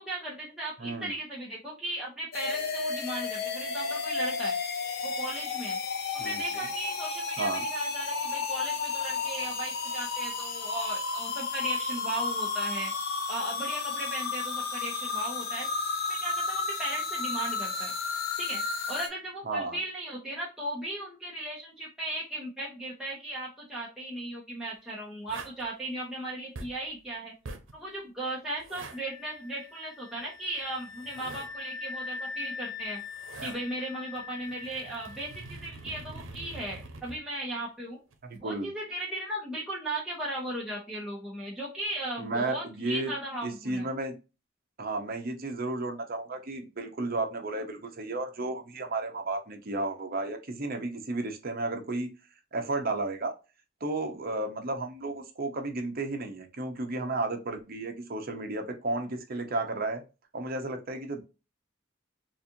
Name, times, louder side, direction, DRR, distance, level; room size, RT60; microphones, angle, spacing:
voice 1, 0.0-4.6 5.0-5.8 6.2-12.9 13.3-15.7 16.1-17.9 18.4-18.6 18.9-27.3 27.7-33.0 33.4-38.0 38.4-43.9, right 1 dB, 5° right, -6 dB, 1.0 m, -37 dB
voice 2, 0.8-1.2 6.2-6.6 7.4-7.6 19.4-19.8 38.2-38.7 42.2-43.1 43.4-44.1 44.8-52.1 52.5-53.3 53.8-60.0 60.3-61.2, right 2 dB, 50° right, 4 dB, 0.8 m, -33 dB
sound 1, 2.3-19.1, left 4 dB, 55° left, 0.7 m, -32 dB
sound 2, 25.3-25.6 26.5-26.8 27.4-27.7 28.6-29.0 30.6-31.5 32.8-33.6 34.2-37.2 38.1-38.4, right 3 dB, 85° right, 0.8 m, -44 dB
sound 3, 28.8-35.6, left 5 dB, 80° left, 1.3 m, -42 dB
4.1 x 2.5 x 2.7 m, 0.30 s
head